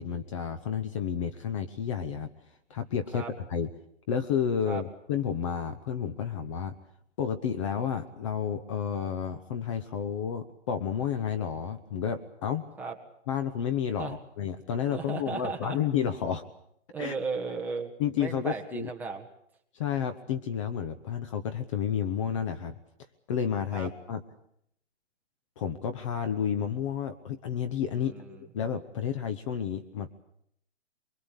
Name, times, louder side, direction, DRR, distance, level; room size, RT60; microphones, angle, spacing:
voice 1, 0.0-2.3 2.7-3.2 3.5-3.7 4.1-6.7 7.2-12.6 13.3-16.4 17.0-17.1 18.0-18.9 19.7-22.7 23.3-24.2 25.6-30.1, left 8 dB, 25° left, 9 dB, 1.0 m, -31 dB
voice 2, 14.9-15.8 16.9-17.9 18.2-19.3 23.7-23.9 28.0-28.3, right 4 dB, 5° right, 1 dB, 1.6 m, -35 dB
23.5 x 23.5 x 8.3 m, 0.72 s
hypercardioid pair, 155°, 35 cm